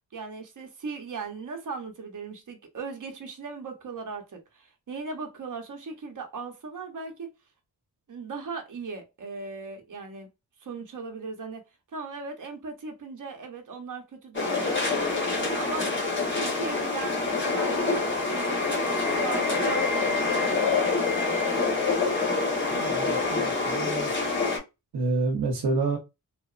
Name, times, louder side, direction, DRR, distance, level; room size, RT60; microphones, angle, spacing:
voice 1, 0.1-7.3 8.1-10.3 10.6-15.0 15.3-21.6, right 4 dB, 50° right, 0.9 m, -38 dB
amb train in windy day, 14.3-24.6, left 3 dB, 30° left, 1.2 m, -26 dB
voice 2, 22.7-24.1 24.9-26.0, right 3 dB, 75° right, 0.8 m, -28 dB
2.8 x 2.1 x 2.4 m
cardioid pair, 70°, 40 cm